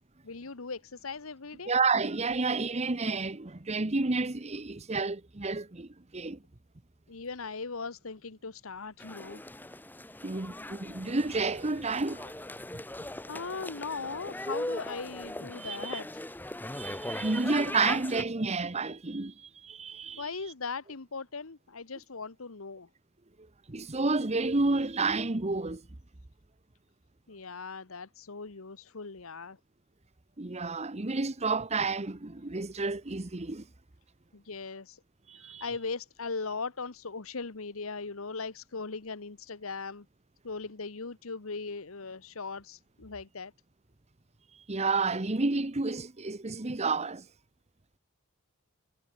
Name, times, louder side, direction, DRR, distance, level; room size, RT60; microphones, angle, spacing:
voice 1, 0.2-1.7 7.1-9.4 13.3-16.3 20.2-22.9 27.3-29.6 34.3-35.0 35.4-40.0 40.4-43.5, left 4 dB, 80° left, 1.2 m, -39 dB
voice 2, 1.7-6.4 10.2-12.3 15.6-16.0 16.7-20.2 23.7-25.8 30.4-33.6 35.3-35.6 44.7-47.2, right 3 dB, 30° right, 1.1 m, -30 dB
sound 1, 9.0-18.2, left 1 dB, 10° left, 1.1 m, -39 dB
head